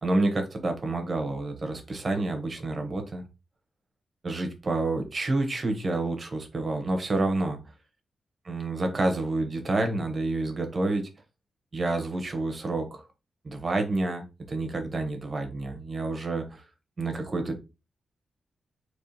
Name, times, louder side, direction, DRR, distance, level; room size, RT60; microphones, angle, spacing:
voice 1, 0.0-3.2 4.2-7.6 8.4-11.1 11.7-13.1 13.4-16.6 17.0-17.6, right 2 dB, 45° right, 1.1 m, -29 dB
3.6 x 3.0 x 2.9 m
cardioid pair, 65°, 0 cm